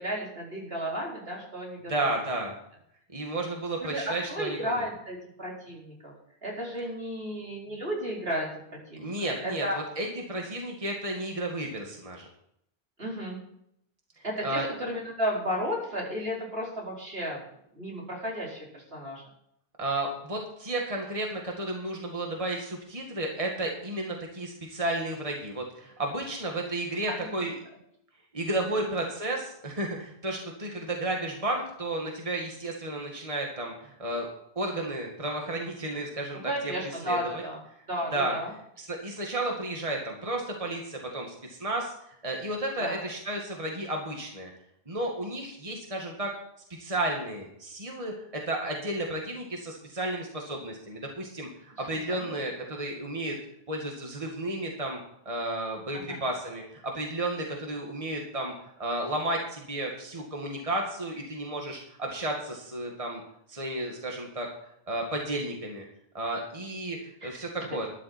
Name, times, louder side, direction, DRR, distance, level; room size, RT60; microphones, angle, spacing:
voice 1, 0.0-2.2 3.8-6.1 6.4-9.1 9.4-9.8 13.0-13.4 14.2-17.4 17.7-19.2 27.1-27.2 28.8-28.9 36.4-37.6 37.9-38.5 42.8-43.0 51.9-52.4 55.9-56.2 67.2-67.4, equal, 75° right, -3 dB, 4.8 m, -33 dB
voice 2, 1.9-2.5 3.1-4.9 9.0-12.3 14.4-14.7 19.8-27.5 28.3-34.3 34.6-36.7 37.0-37.4 38.1-38.4 38.8-41.9 42.2-44.5 44.9-46.3 46.8-53.4 53.7-55.0 55.3-58.5 58.8-63.2 63.5-64.5 64.9-65.8 66.1-67.9, right 1 dB, 35° right, 0 dB, 2.0 m, -32 dB
12.5 x 11.5 x 4.4 m, 0.73 s
omnidirectional pair, 1.0 m